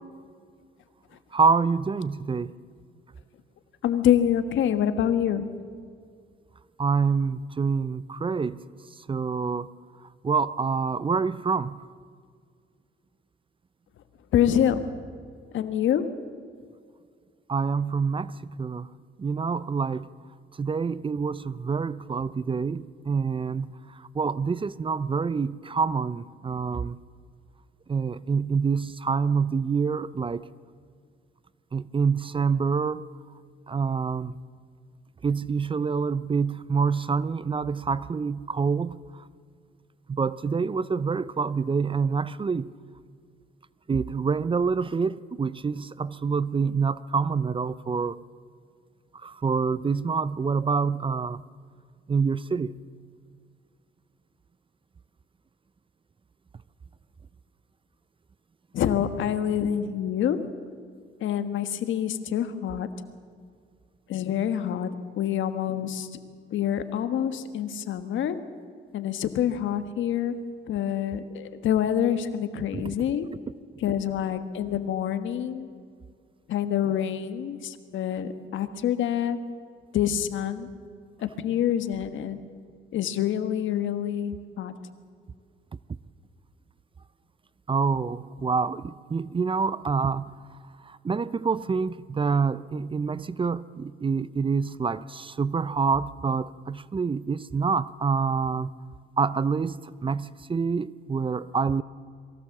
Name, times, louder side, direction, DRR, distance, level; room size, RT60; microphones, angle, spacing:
voice 1, 1.3-2.5 6.8-8.6 9.0-9.7 10.2-11.8 17.5-18.9 19.2-20.1 20.6-27.0 27.9-30.5 31.7-33.1 33.7-34.4 35.2-39.2 40.1-42.7 43.9-48.2 49.1-51.4 52.1-52.7 72.7-73.0 73.4-73.5 87.7-90.3 90.8-98.7 99.2-101.8, right 5 dB, 25° right, 18 dB, 0.5 m, -26 dB
voice 2, 3.8-5.5 14.3-14.8 15.5-16.0 58.7-60.4 61.2-62.9 64.1-64.9 65.2-66.1 66.5-68.4 68.9-70.3 70.7-73.3 73.8-75.7 76.5-79.4 79.9-80.7 81.4-82.4 82.9-84.7, left 10 dB, 75° left, 10 dB, 1.4 m, -26 dB
23.0 x 16.0 x 7.3 m, 2.1 s
cardioid pair, 90°, 20 cm